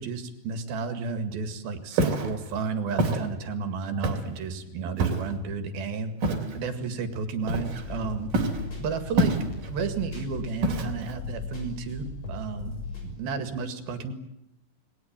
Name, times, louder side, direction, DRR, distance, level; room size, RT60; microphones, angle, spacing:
voice 1, 0.0-6.1 6.5-8.3 8.8-9.3 9.7-12.7 13.0-14.1, right 5 dB, 90° right, 9 dB, 3.9 m, -32 dB
Walk footsteps, 1.9-2.3 3.0-3.2 4.0-4.4 5.0-5.3 6.2-6.5 7.5-7.9 8.3-8.6 9.2-9.7 10.6-11.1, right 2 dB, 65° right, 4.6 m, -25 dB
sound 1, 7.4-13.1, left 3 dB, 45° left, 7.4 m, -37 dB
29.0 x 20.5 x 9.0 m, 0.82 s
omnidirectional pair, 4.2 m